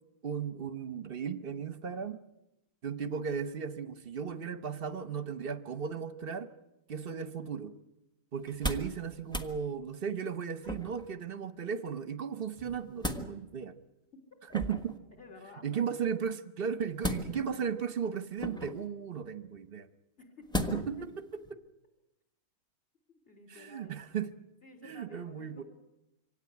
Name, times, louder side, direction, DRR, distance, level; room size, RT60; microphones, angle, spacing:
voice 1, 0.2-2.2 2.8-6.5 6.9-7.8 8.3-13.7 14.5-14.9 15.6-19.9 20.5-21.0 21.5-21.6 23.5-24.3 24.8-25.6, right 7 dB, 40° right, 12 dB, 1.1 m, -36 dB
sound 1, 8.4-9.0 9.3-9.5 10.6-11.1 12.6-13.3 14.5-15.0 17.0-17.6 18.4-18.9 20.5-21.0 21.5-21.6, left 1 dB, 5° left, 1.1 m, -35 dB
voice 2, 15.2-15.8 20.2-20.7 23.3-24.1 24.6-25.6, left 3 dB, 35° left, 3 dB, 4.0 m, -53 dB
24.5 x 17.5 x 9.7 m, 0.95 s
omnidirectional pair, 1.7 m